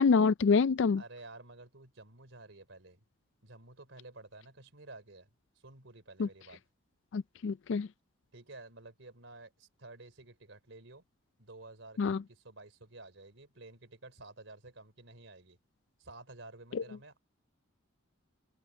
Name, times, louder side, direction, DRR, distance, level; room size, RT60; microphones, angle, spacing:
voice 1, 0.0-1.0 6.2-6.3 7.1-7.9 12.0-12.2, left 5 dB, 65° left, 0.4 m, -26 dB
voice 2, 0.9-3.0 3.4-5.3 5.5-6.6 8.3-11.0 11.4-15.6 16.0-17.2, right 2 dB, 70° right, 3.4 m, -52 dB
open air
head